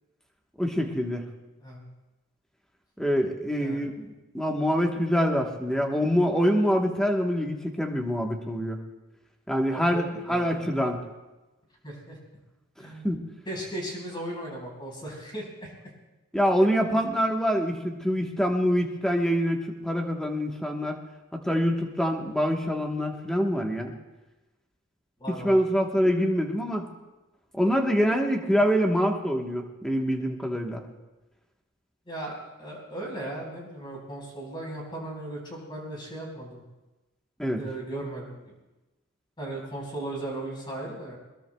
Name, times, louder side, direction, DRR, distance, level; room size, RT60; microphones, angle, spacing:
voice 1, 0.6-1.2 3.0-4.1 4.3-8.8 9.5-11.0 12.8-13.2 16.3-21.0 21.3-23.9 25.4-26.9 27.5-30.9 37.4-37.6, equal, 5° left, 1 dB, 1.1 m, -25 dB
voice 2, 9.7-10.8 11.8-12.2 12.8-15.7 25.2-25.6 32.1-36.6 37.6-38.5 39.4-41.2, right 1 dB, 20° left, -2 dB, 4.5 m, -37 dB
21.5 x 21.0 x 2.3 m, 1.1 s
head